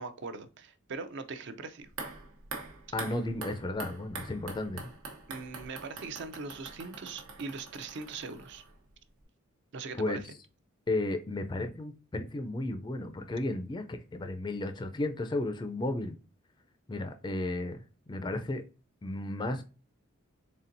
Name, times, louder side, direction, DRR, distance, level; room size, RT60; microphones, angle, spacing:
voice 1, 0.0-1.9 5.3-8.6 9.7-10.2, right 4 dB, 55° right, 0.5 m, -41 dB
sound 1, 1.8-8.9 9.2-9.3, right 3 dB, 85° right, 1.1 m, -44 dB
voice 2, 2.9-4.9 10.0-10.2 10.9-16.1 16.9-17.8 18.1-18.6 19.0-19.7, left 2 dB, 20° left, 0.3 m, -33 dB
4.2 x 3.6 x 2.5 m
head